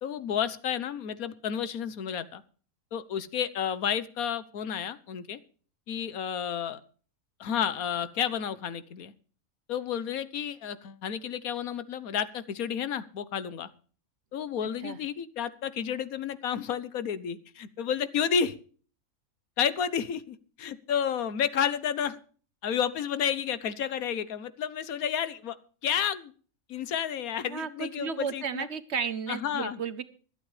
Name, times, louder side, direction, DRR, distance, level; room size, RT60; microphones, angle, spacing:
voice 1, 0.0-2.4 2.9-5.4 5.9-6.8 7.4-9.1 9.7-13.7 14.3-18.5 19.6-22.2 22.6-25.6 25.8-26.3 26.7-28.7 29.3-29.8, left 8 dB, 80° left, 15 dB, 1.4 m, -31 dB
voice 2, 27.4-30.0, right 6 dB, 55° right, 14 dB, 1.1 m, -33 dB
24.5 x 8.9 x 3.2 m, 0.41 s
omnidirectional pair, 1.5 m